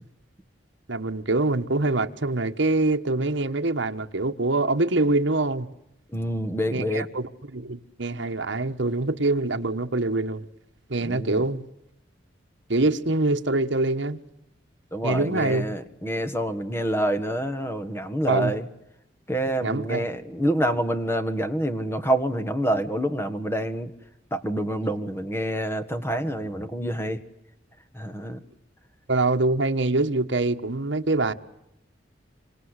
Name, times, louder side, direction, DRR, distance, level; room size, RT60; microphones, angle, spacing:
voice 1, 0.9-5.7 6.7-10.5 10.9-11.6 12.7-14.2 15.0-15.7 18.3-18.5 19.6-20.0 29.1-31.3, right 2 dB, 70° right, 1.4 m, -24 dB
voice 2, 6.1-7.1 11.0-11.4 14.9-18.7 19.3-23.9 24.3-27.2 27.9-28.4, right 1 dB, 10° left, 1.6 m, -27 dB
27.0 x 25.5 x 8.3 m
head